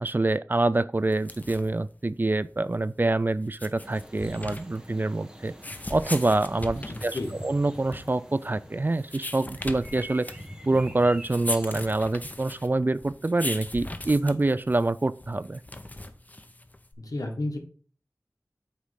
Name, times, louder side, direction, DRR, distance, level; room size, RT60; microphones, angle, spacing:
voice 1, 0.0-5.5 5.9-7.2 7.4-10.3 10.7-15.6, right 2 dB, 35° right, 0.3 m, -26 dB
sound 1, 1.1-16.9, left 1 dB, 25° left, 0.7 m, -39 dB
sound 2, 3.8-11.9, equal, 15° right, 1.2 m, -45 dB
voice 2, 6.9-7.4 17.0-17.6, left 2 dB, 80° left, 1.3 m, -32 dB
8.2 x 3.2 x 5.6 m
wide cardioid pair, 60°, 6 cm